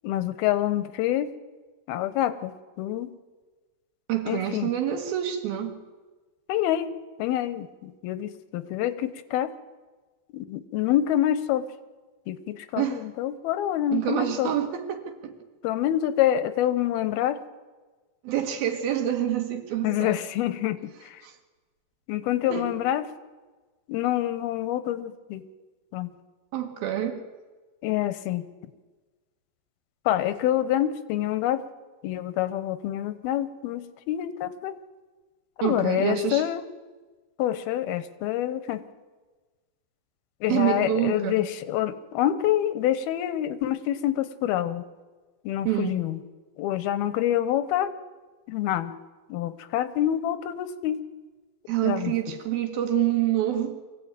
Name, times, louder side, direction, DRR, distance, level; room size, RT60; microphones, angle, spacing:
voice 1, 0.0-1.3 1.9-3.1 4.3-4.7 6.5-9.5 10.3-11.7 12.3-14.5 15.6-17.4 19.8-21.2 22.1-23.1 23.9-25.5 25.9-26.1 27.8-28.5 30.1-31.6 32.0-34.8 35.6-36.7 37.4-38.8 40.4-44.8 45.4-46.2 46.6-47.9 48.5-49.0 49.3-51.0 51.8-52.1, left 12 dB, 90° left, 13 dB, 2.9 m, -27 dB
voice 2, 4.1-5.8 12.8-13.0 13.9-15.3 18.2-20.2 21.2-21.3 22.5-22.7 26.5-27.2 35.6-36.4 40.5-41.4 45.7-46.0 51.7-53.8, right 11 dB, 75° right, 5 dB, 3.7 m, -27 dB
24.0 x 16.0 x 9.0 m, 1.3 s
omnidirectional pair, 4.4 m